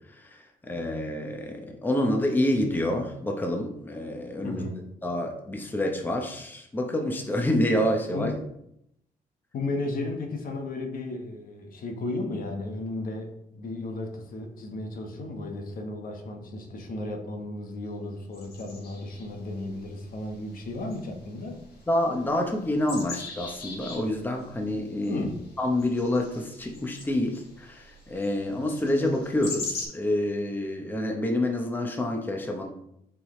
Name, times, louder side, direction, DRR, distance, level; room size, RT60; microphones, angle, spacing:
voice 1, 0.1-4.6 5.0-8.3 21.9-25.3 25.6-32.7, left 1 dB, 10° left, 2 dB, 0.8 m, -28 dB
voice 2, 4.4-4.9 8.1-8.3 9.5-21.6 25.1-25.4, left 2 dB, 60° left, 3 dB, 1.2 m, -34 dB
sound 1, 18.3-29.8, left 3 dB, 90° left, 2.0 m, -42 dB
6.9 x 4.9 x 3.2 m, 0.77 s
cardioid pair, 125°, 16 cm